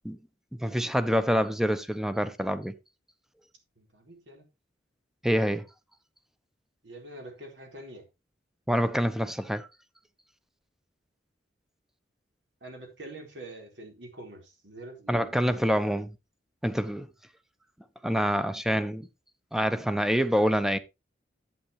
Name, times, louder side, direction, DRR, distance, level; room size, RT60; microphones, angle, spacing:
voice 1, 0.6-2.7 5.2-5.6 8.7-9.7 15.1-16.1 16.6-17.1 18.0-19.1 19.5-20.8, equal, ahead, 0.8 m, -26 dB
voice 2, 3.8-4.5 6.8-8.0 12.6-15.4, right 1 dB, 80° right, 4.3 m, -45 dB
11.5 x 8.6 x 3.2 m
head